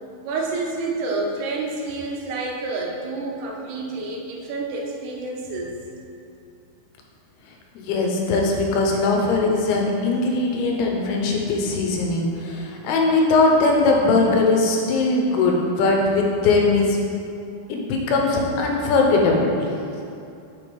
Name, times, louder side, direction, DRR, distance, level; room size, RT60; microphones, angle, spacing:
voice 1, 0.2-5.8, right 3 dB, 85° right, 0 dB, 2.9 m, -29 dB
voice 2, 7.8-17.0 17.7-19.5, left 3 dB, 80° left, 0 dB, 2.7 m, -20 dB
6.8 x 3.4 x 5.2 m, 2.5 s
omnidirectional pair, 4.6 m